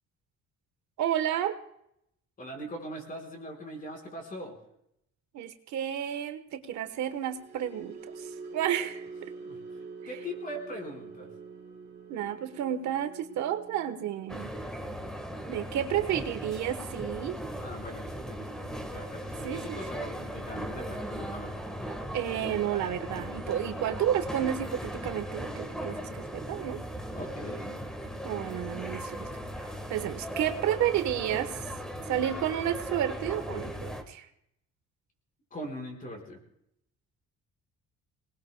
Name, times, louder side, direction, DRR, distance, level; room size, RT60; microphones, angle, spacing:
voice 1, 1.0-1.6 5.3-9.3 12.1-14.5 15.5-17.4 19.4-19.8 22.1-26.8 28.2-29.3 29.6-31.6 32.1-34.3, right 10 dB, 75° right, 9 dB, 1.1 m, -31 dB
voice 2, 2.4-4.6 9.4-9.6 10.1-11.3 17.6-21.6 27.1-27.8 35.5-36.4, equal, 30° left, 1 dB, 4.4 m, -41 dB
sound 1, 6.9-23.3 23.6-23.9 24.2-24.5, right 4 dB, 35° right, 3.4 m, -48 dB
sound 2, 14.3-34.0, equal, ahead, 1.4 m, -38 dB
27.0 x 19.5 x 2.2 m, 0.76 s
cardioid pair, 165°, 29 cm